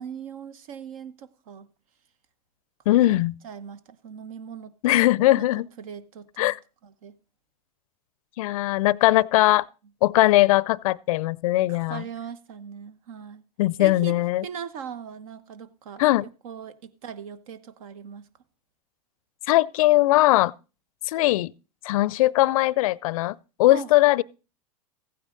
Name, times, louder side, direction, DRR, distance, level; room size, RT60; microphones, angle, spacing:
voice 1, 0.0-1.7 3.4-5.5 5.8-6.5 6.8-7.2 11.7-13.4 13.8-14.2 14.4-16.0 16.4-18.3 23.7-23.9, right 7 dB, 70° right, 1.1 m, -39 dB
voice 2, 2.9-3.4 4.8-5.7 6.4-6.6 8.4-9.7 10.0-12.0 13.6-14.4 16.0-16.3 19.5-20.5 21.1-21.5 21.8-24.2, left 17 dB, 70° left, 0.5 m, -20 dB
15.0 x 9.4 x 3.8 m
hypercardioid pair, 105°, 19 cm